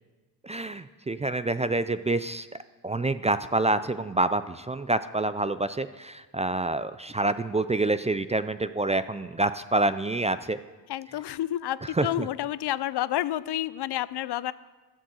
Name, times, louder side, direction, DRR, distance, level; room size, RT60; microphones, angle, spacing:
voice 1, 0.4-2.5 2.8-10.6 12.0-12.3, right 2 dB, 20° right, 13 dB, 0.3 m, -27 dB
voice 2, 10.9-14.5, left 13 dB, 80° left, 18 dB, 0.5 m, -30 dB
12.0 x 7.5 x 7.8 m, 1.3 s
wide cardioid pair, 105°, 40 cm